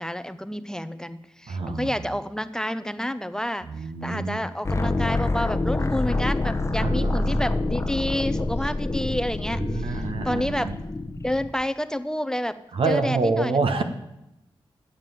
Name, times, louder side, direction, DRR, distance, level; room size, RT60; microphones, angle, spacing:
voice 1, 0.0-3.7 4.0-10.7 11.2-12.6 12.9-13.6, left 1 dB, 5° left, 13 dB, 0.5 m, -29 dB
voice 2, 1.5-2.0 3.7-4.4 6.8-7.4 9.6-10.7 12.7-13.8, right 3 dB, 80° right, 7 dB, 1.1 m, -27 dB
sound 1, 4.6-11.5, left 2 dB, 30° left, 0.9 m, -26 dB
9.0 x 7.2 x 7.7 m, 0.88 s
cardioid pair, 75°, 9 cm